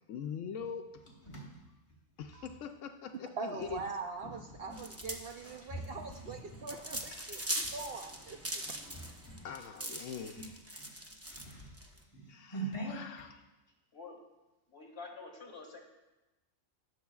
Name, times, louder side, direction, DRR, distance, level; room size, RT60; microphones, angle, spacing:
voice 1, 0.1-0.8 2.2-3.8 7.1-7.7 9.4-10.6 12.3-13.4, left 7 dB, 75° left, 5 dB, 0.9 m, -43 dB
sound 1, 0.6-2.6 3.5-7.8 8.3-8.5 8.9-9.6 9.9-10.0 10.3-13.3, right 2 dB, 25° left, 1.6 m, -46 dB
voice 2, 3.4-8.6, right 4 dB, 60° right, 4 dB, 0.7 m, -42 dB
sound 2, 4.7-12.0, right 1 dB, 20° right, 0.4 m, -41 dB
voice 3, 14.7-15.8, left 4 dB, 50° left, 0 dB, 1.9 m, -47 dB
17.5 x 6.7 x 2.3 m, 1.1 s
omnidirectional pair, 1.4 m